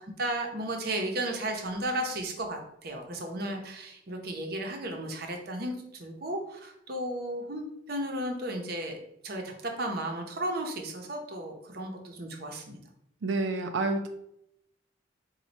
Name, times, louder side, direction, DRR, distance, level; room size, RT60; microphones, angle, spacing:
voice 1, 0.2-9.0 9.2-12.8, right 1 dB, 55° right, 3 dB, 0.8 m, -34 dB
voice 2, 13.2-14.1, right 3 dB, 75° right, 6 dB, 0.4 m, -28 dB
4.5 x 2.3 x 4.0 m, 0.79 s
head